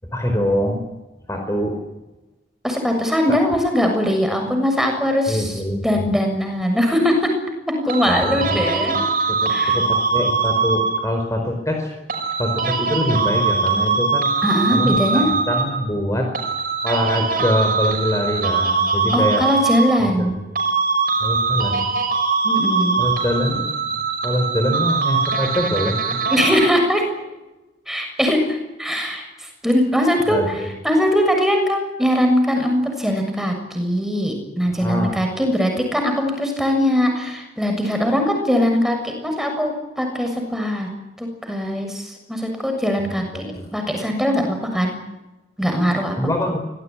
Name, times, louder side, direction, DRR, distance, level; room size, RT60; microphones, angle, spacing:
voice 1, 0.1-0.8 1.3-1.8 5.3-6.0 8.0-9.0 9.3-11.9 12.4-14.3 14.7-16.3 16.8-19.5 20.2-20.3 21.2-21.9 23.0-26.2 30.3-30.7 34.7-35.1 43.0-43.7 46.2-46.6, equal, 15° left, 3 dB, 4.8 m, -24 dB
voice 2, 2.6-5.5 5.8-7.3 7.7-9.0 9.5-9.8 14.4-15.3 19.1-20.4 22.4-23.0 26.3-27.0 27.9-40.9 41.2-45.0 45.6-46.2, equal, ahead, 4 dB, 7.0 m, -21 dB
sound 1, 7.9-11.3 12.1-15.9 16.3-20.3 20.6-26.9, right 4 dB, 50° right, 6.3 m, -22 dB
26.5 x 19.5 x 10.0 m, 1.0 s
head